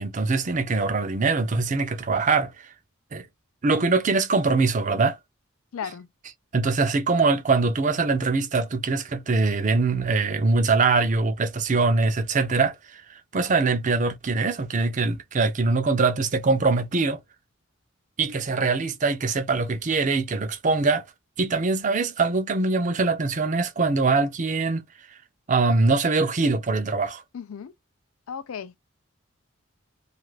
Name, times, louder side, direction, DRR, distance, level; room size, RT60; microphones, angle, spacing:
voice 1, 0.0-2.7 3.1-3.3 3.6-5.2 6.5-17.2 18.2-21.0 21.4-24.8 25.5-27.2, right 3 dB, 35° right, 0.5 m, -23 dB
voice 2, 5.7-6.1 27.3-27.7 28.3-28.8, left 7 dB, 85° left, 0.4 m, -35 dB
2.5 x 2.4 x 3.1 m
head